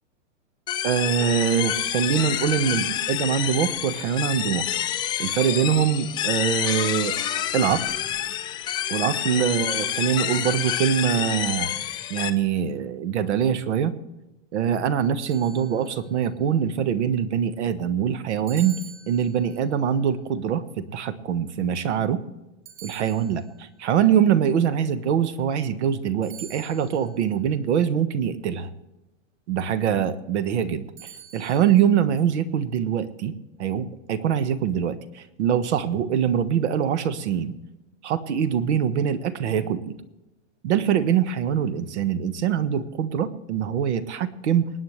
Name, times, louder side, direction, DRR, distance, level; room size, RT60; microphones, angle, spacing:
sound 1, 0.7-12.3, left 11 dB, 10° left, 0.5 m, -28 dB
voice 1, 0.8-4.7 5.2-7.1 7.5-8.0 8.9-11.7 12.1-13.9 14.5-18.8 19.1-22.2 22.8-28.7 29.5-30.9 31.3-37.6 38.0-39.9 40.6-44.7, right 8 dB, 60° right, 12 dB, 1.4 m, -23 dB
sound 2, 15.3-16.2 18.5-19.7 22.7-23.7 26.2-27.2 31.0-31.8, right 7 dB, 40° right, 4.8 m, -45 dB
26.5 x 9.5 x 3.3 m, 0.99 s
hypercardioid pair, 150°, 38 cm